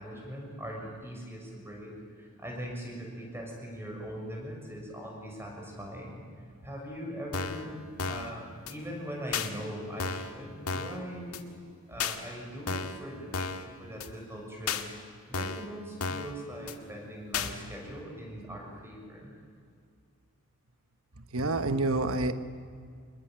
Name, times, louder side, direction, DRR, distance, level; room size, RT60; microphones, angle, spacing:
voice 1, 0.0-6.2 6.6-7.8 8.1-11.4 11.9-14.9 15.3-19.3, equal, 10° right, 0 dB, 6.5 m, -41 dB
sound 1, 7.3-7.7 8.0-8.3 8.7-8.8 9.3-9.5 10.0-10.3 10.7-11.0 11.3-11.4 12.0-12.2 12.7-13.0 13.3-13.7 14.0-14.1 14.7-14.8 15.3-15.7 16.0-16.3 16.7-16.8 17.3-17.5, left 5 dB, 80° left, 1.8 m, -33 dB
voice 2, 21.2-22.3, right 2 dB, 65° right, 10 dB, 1.3 m, -28 dB
25.5 x 22.0 x 9.1 m, 2.2 s
head